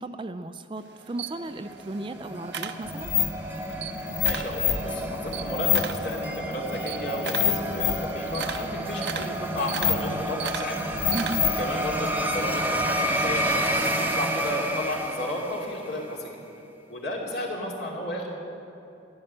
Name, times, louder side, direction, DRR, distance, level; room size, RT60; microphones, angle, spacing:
voice 1, 0.0-3.1 11.1-11.5, right 2 dB, 25° right, 10 dB, 0.4 m, -35 dB
Camera, 0.8-3.4 3.7-4.6 5.0-11.7, right 7 dB, 70° right, 0.8 m, -37 dB
sound 1, 1.3-16.0, right 1 dB, 10° right, 0.9 m, -30 dB
sound 2, 2.8-13.3, left 8 dB, 80° left, 0.9 m, -30 dB
voice 2, 4.2-10.9 11.6-16.4 16.9-18.4, left 1 dB, 65° left, -2 dB, 2.7 m, -33 dB
14.5 x 11.0 x 7.6 m, 2.9 s
head